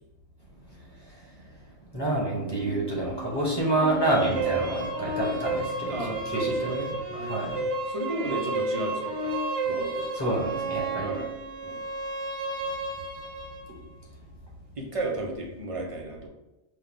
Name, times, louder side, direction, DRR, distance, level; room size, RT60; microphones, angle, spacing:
voice 1, 1.9-7.6 10.1-11.2, right 1 dB, 20° left, -5 dB, 1.4 m, -28 dB
sound 1, 2.3-7.2, left 1 dB, 45° left, 0.8 m, -41 dB
sound 2, 3.7-13.7, right 3 dB, 85° right, 1.1 m, -32 dB
voice 2, 5.9-9.3 9.6-10.1 11.0-11.3 11.6-11.8 14.8-16.3, right 1 dB, 35° right, 0 dB, 0.6 m, -34 dB
5.4 x 2.3 x 3.7 m, 0.97 s
omnidirectional pair, 1.2 m